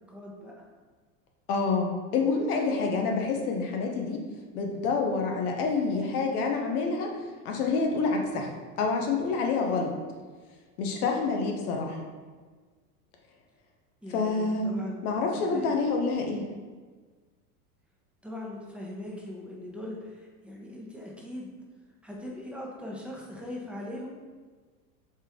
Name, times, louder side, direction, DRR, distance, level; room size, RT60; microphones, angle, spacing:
voice 1, 0.1-0.6 14.0-15.1 15.3-15.7 18.2-21.5 22.0-24.1, left 1 dB, 5° right, -3 dB, 0.8 m, -40 dB
voice 2, 1.5-4.2 4.5-7.1 7.4-8.5 8.8-9.9 10.8-12.0 14.1-14.7 15.0-16.5, left 4 dB, 75° left, 2 dB, 1.0 m, -27 dB
4.4 x 3.2 x 3.6 m, 1.4 s
hypercardioid pair, 95°, 46 cm